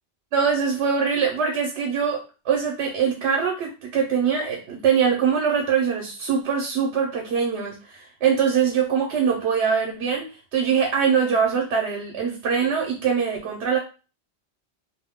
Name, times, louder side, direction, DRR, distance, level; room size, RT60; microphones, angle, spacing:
voice 1, 0.3-13.8, right 6 dB, 80° right, 0 dB, 1.0 m, -23 dB
2.5 x 2.1 x 3.5 m, 0.33 s
omnidirectional pair, 1.1 m